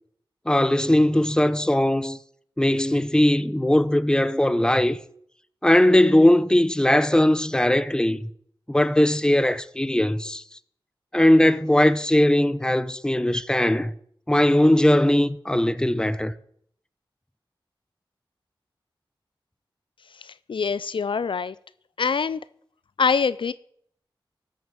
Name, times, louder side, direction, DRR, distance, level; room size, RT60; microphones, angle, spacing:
voice 1, 0.5-2.2 2.6-5.0 5.6-8.3 8.7-10.4 11.1-13.9 14.3-16.3, left 1 dB, 10° left, 0.7 m, -19 dB
voice 2, 20.2-21.6 22.0-22.4 23.0-23.5, left 5 dB, 70° left, 0.4 m, -24 dB
13.5 x 6.5 x 7.4 m
wide cardioid pair, 55°, 9 cm